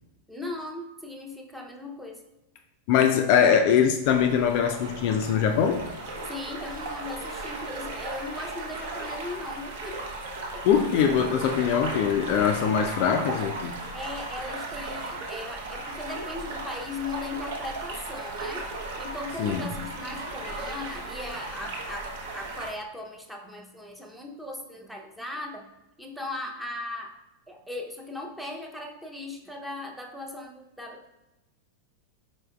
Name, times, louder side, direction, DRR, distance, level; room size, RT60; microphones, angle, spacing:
voice 1, 0.3-2.2 6.2-10.0 13.9-18.7 19.0-25.7 26.0-27.1 27.5-31.1, left 2 dB, ahead, 1 dB, 0.6 m, -38 dB
voice 2, 2.9-5.8 10.6-13.8 19.4-19.7, left 8 dB, 45° left, 4 dB, 0.3 m, -22 dB
sound 1, 4.0-22.7, right 2 dB, 55° right, 0.7 m, -36 dB
4.4 x 4.3 x 2.3 m, 0.99 s
figure-of-eight pair, 90°, 0 cm